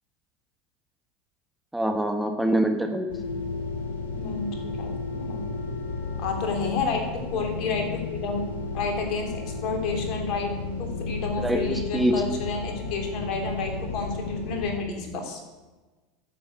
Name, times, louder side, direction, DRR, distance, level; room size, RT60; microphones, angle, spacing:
voice 1, 1.7-3.1 11.4-12.2, right 1 dB, 5° right, 5 dB, 1.3 m, -24 dB
sound 1, 3.1-14.7, left 3 dB, 85° left, 2.8 m, -33 dB
voice 2, 4.1-5.3 6.2-8.4 8.7-10.5 10.8-15.4, left 4 dB, 55° left, 3 dB, 3.2 m, -30 dB
10.0 x 7.8 x 8.0 m, 1.2 s
hypercardioid pair, 100°, 0 cm